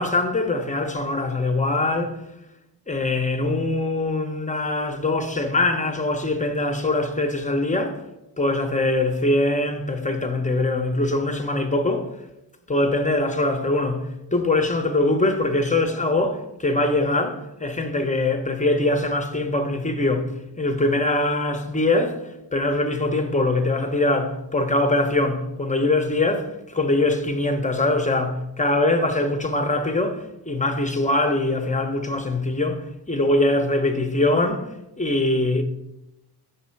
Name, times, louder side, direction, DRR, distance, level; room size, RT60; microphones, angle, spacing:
voice 1, 0.0-2.2 2.9-8.0 8.4-12.1 12.7-22.2 22.5-35.6, left 2 dB, 20° left, 0.7 m, -23 dB
5.6 x 4.2 x 5.7 m
wide cardioid pair, 75°, 41 cm